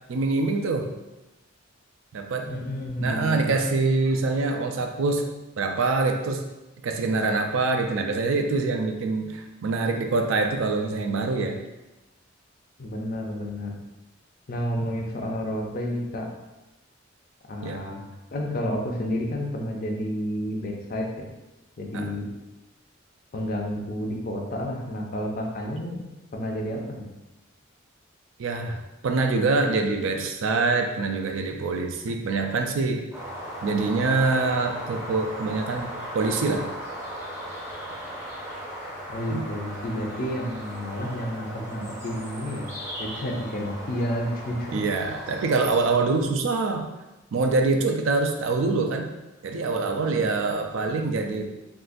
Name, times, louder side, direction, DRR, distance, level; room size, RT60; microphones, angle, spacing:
voice 1, 0.1-0.9 2.1-2.5 3.0-6.4 6.8-11.6 14.8-14.9 17.6-17.8 21.9-22.1 28.4-33.0 33.6-35.9 36.1-36.7 39.3-39.4 44.7-46.8 47.3-49.1 49.4-51.4, right 3 dB, 75° right, 4 dB, 0.4 m, -25 dB
voice 2, 2.5-3.5 12.8-13.7 14.5-16.3 17.5-18.0 18.3-21.3 21.8-22.2 23.3-26.0 26.3-27.0 39.1-42.7 43.0-44.8, equal, 45° left, 0 dB, 0.5 m, -30 dB
sound 1, 33.1-45.9, equal, 15° right, 0.5 m, -37 dB
3.6 x 2.4 x 2.5 m, 1.0 s
head